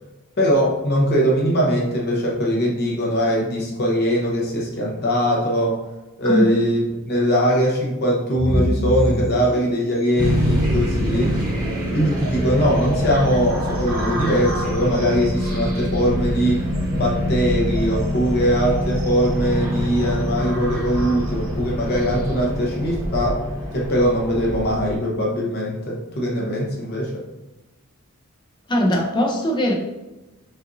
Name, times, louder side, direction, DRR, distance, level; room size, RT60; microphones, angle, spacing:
voice 1, 0.4-5.8 6.2-11.4 11.9-16.6 16.9-23.4 23.7-27.2, equal, 50° left, -3 dB, 0.8 m, -21 dB
sound 1, 8.4-22.4, equal, 40° right, 1.2 m, -31 dB
sound 2, 10.2-24.9, equal, 20° right, 0.9 m, -25 dB
voice 2, 28.7-29.7, left 1 dB, 20° left, 1 dB, 0.6 m, -20 dB
5.5 x 2.5 x 2.6 m, 1.1 s
head